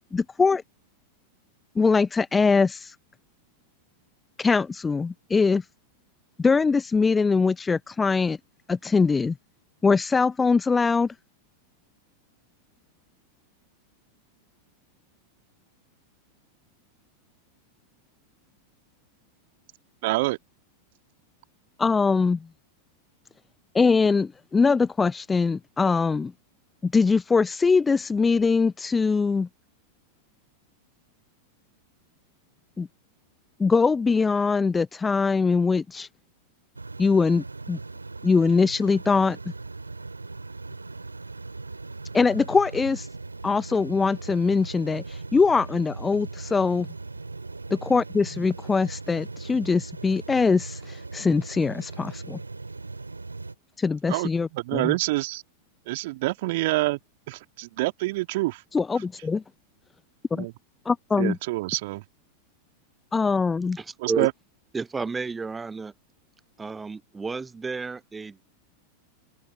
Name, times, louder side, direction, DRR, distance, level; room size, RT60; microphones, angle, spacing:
voice 1, 0.1-0.6 1.8-2.9 4.4-5.6 6.4-8.4 8.7-9.4 9.8-11.1 21.8-22.5 23.7-26.3 26.8-29.5 32.8-32.9 33.6-36.1 37.0-37.8 38.2-39.4 42.1-43.1 43.4-46.9 47.7-52.4 53.8-54.9 58.7-59.4 60.3-60.5 60.8-61.4 63.1-63.8, left 4 dB, 15° left, 0.9 m, -22 dB
voice 2, 20.0-20.4 54.1-55.4 55.9-57.0 57.3-58.6 60.3-60.5 61.1-62.0 64.0-64.3, right 20 dB, 50° right, 2.3 m, -27 dB
sound 1, 36.8-53.6, right 3 dB, 80° right, 2.7 m, -39 dB
voice 3, 63.7-64.3 64.7-65.9 66.6-68.4, right 4 dB, 15° right, 1.0 m, -32 dB
open air
figure-of-eight pair, 90°, 0 cm